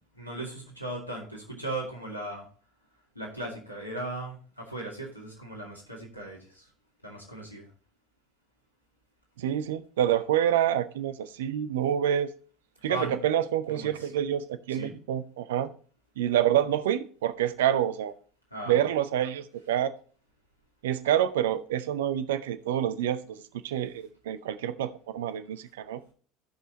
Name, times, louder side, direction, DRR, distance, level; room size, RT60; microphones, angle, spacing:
voice 1, 0.1-2.5 3.1-6.7 7.0-7.7 12.9-13.2 13.7-14.1 14.7-14.9 18.5-18.8, right 1 dB, 85° left, 2.2 m, -37 dB
voice 2, 9.4-12.3 12.8-15.7 16.2-18.1 18.7-19.9 20.8-26.0, right 10 dB, 65° right, 0.6 m, -27 dB
15.5 x 5.5 x 2.9 m
figure-of-eight pair, 70°, 0 cm